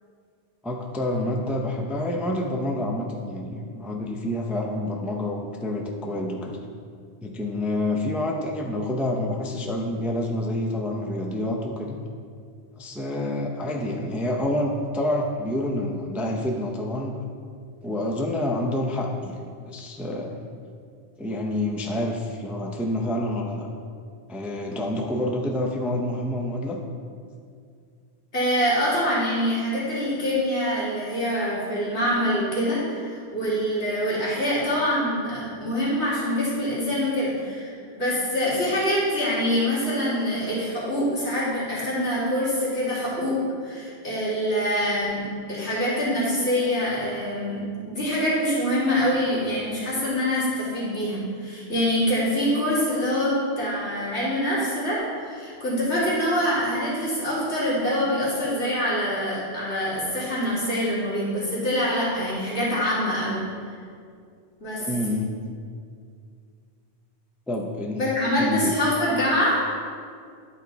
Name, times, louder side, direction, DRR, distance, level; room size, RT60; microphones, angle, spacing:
voice 1, 0.6-6.6 7.2-12.0 12.8-17.2 17.8-20.4 21.2-23.7 24.3-26.8 64.8-65.3 67.5-68.0 68.4-68.8, left 1 dB, ahead, 1 dB, 0.4 m, -28 dB
voice 2, 28.3-47.6 47.9-63.4 64.6-64.9 68.0-69.6, equal, 80° left, -9 dB, 2.6 m, -25 dB
10.5 x 4.4 x 4.0 m, 2.2 s
omnidirectional pair, 1.1 m